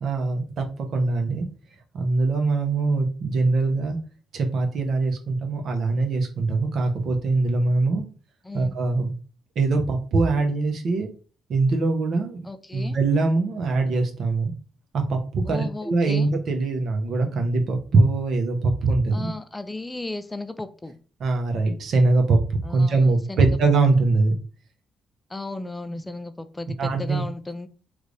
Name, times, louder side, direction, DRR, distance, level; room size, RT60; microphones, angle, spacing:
voice 1, 0.0-0.7 0.9-1.5 1.9-4.0 4.3-8.0 8.5-9.1 9.6-11.1 11.5-12.4 12.7-14.5 14.9-19.3 21.2-24.3 26.8-27.2, right 3 dB, 60° right, 3 dB, 0.9 m, -22 dB
voice 2, 12.4-13.0 15.5-16.3 19.1-21.0 22.6-23.5 25.3-27.7, left 2 dB, 15° left, 10 dB, 0.4 m, -35 dB
3.3 x 2.6 x 3.2 m, 0.37 s
cardioid pair, 90°, 0 cm